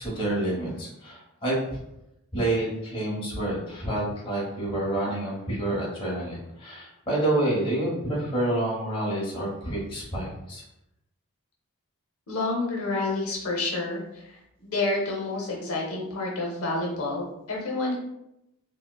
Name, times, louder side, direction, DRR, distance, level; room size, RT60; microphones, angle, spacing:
voice 1, 0.0-1.8 2.3-10.6, right 1 dB, 25° left, -6 dB, 1.0 m, -28 dB
voice 2, 12.3-18.0, left 2 dB, 75° left, -2 dB, 0.8 m, -29 dB
5.0 x 2.0 x 2.3 m, 0.85 s
head